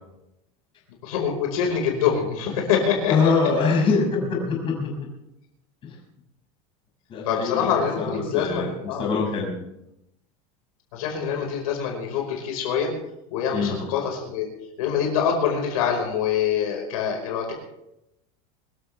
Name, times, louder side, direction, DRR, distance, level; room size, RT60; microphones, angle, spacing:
voice 1, 1.0-3.1 7.2-9.0 10.9-12.9 13.3-14.5 14.8-17.5, left 7 dB, 80° left, 1 dB, 5.0 m, -25 dB
voice 2, 3.1-5.1 5.8-5.9 7.1-7.7 8.0-9.5 13.5-13.8, left 4 dB, 30° left, -1 dB, 6.2 m, -24 dB
25.0 x 14.0 x 3.5 m, 0.86 s
supercardioid pair, 155°, 19 cm